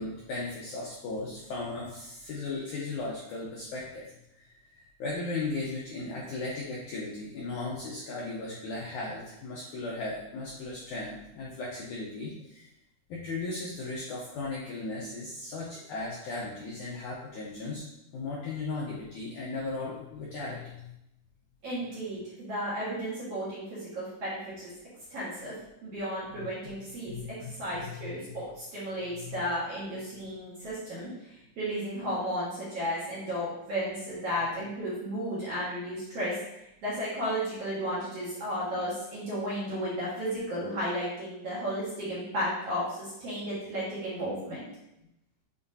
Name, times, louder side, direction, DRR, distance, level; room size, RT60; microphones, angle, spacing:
voice 1, 0.0-4.0 4.3-12.7 13.1-17.8 18.1-20.9 27.1-27.5 28.0-28.1 29.2-29.4, left 3 dB, 90° left, -5 dB, 1.7 m, -36 dB
voice 2, 21.6-24.7 25.1-25.5 25.8-44.7, equal, 50° right, -8 dB, 2.0 m, -34 dB
7.4 x 4.9 x 2.7 m, 0.84 s
omnidirectional pair, 4.7 m